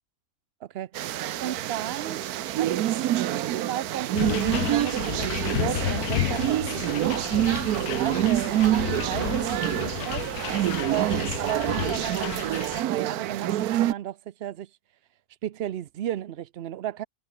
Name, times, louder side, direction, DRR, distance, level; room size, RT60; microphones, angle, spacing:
sound 1, 0.9-13.9, right 13 dB, 90° right, 1.2 m, -27 dB
voice 1, 1.4-2.2 2.6-2.9 3.3-10.6 10.9-14.7 15.4-17.0, right 11 dB, 60° right, 0.7 m, -34 dB
sound 2, 4.2-12.8, left 15 dB, 85° left, 1.1 m, -32 dB
omnidirectional pair, 1.6 m